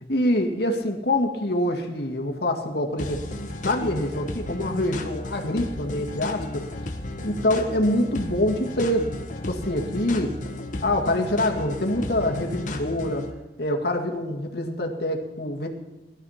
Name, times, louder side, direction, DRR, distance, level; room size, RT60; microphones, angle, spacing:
voice 1, 0.1-3.2 3.6-6.7 7.2-9.2 9.5-10.4 10.8-13.3 13.6-15.7, left 1 dB, 60° left, 2 dB, 2.1 m, -25 dB
sound 1, 3.0-13.3, left 1 dB, 45° left, 1.3 m, -34 dB
17.5 x 12.0 x 5.8 m, 1.1 s
head